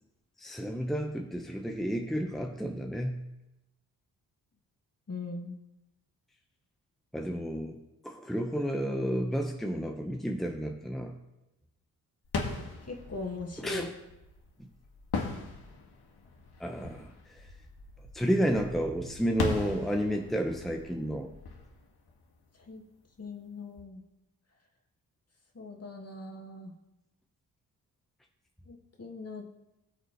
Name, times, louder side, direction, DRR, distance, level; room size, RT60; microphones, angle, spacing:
voice 1, 0.4-3.3 7.1-7.8 8.0-11.2 13.6-13.9 16.6-17.5 18.1-21.3, equal, ahead, 3 dB, 1.3 m, -31 dB
voice 2, 5.1-5.6 12.9-13.9 22.7-22.8 23.2-24.0 25.6-26.7 28.7-29.5, left 3 dB, 30° left, 2 dB, 2.3 m, -40 dB
sound 1, 12.2-22.8, left 3 dB, 55° left, 2.3 m, -39 dB
18.5 x 6.5 x 3.3 m, 0.94 s
hypercardioid pair, 40°, 45 cm